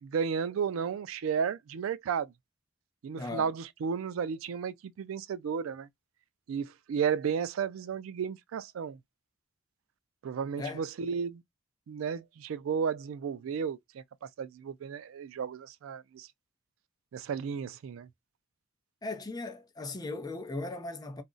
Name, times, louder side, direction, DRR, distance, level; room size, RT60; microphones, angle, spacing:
voice 1, 0.0-2.3 3.0-5.9 6.5-9.0 10.2-11.4 11.9-16.3 17.1-18.1, right 7 dB, 75° right, 0.3 m, -33 dB
voice 2, 3.2-3.5 10.6-10.8 19.0-21.2, left 2 dB, 20° left, 0.5 m, -37 dB
2.4 x 2.0 x 3.7 m
head